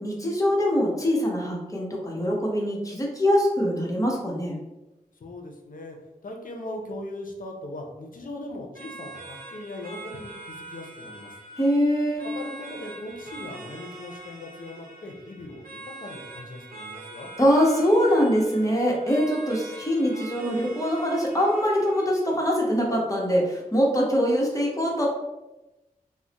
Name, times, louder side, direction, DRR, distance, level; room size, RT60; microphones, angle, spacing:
voice 1, 0.0-4.5 11.6-12.3 17.4-25.1, equal, 20° left, -2 dB, 0.9 m, -23 dB
voice 2, 5.2-6.0 6.2-11.3 12.3-17.3, left 1 dB, 65° left, 2 dB, 0.6 m, -39 dB
sound 1, 8.7-22.3, right 2 dB, 75° right, 0.9 m, -43 dB
2.3 x 2.1 x 3.9 m, 1.0 s
cardioid pair, 50°, 15 cm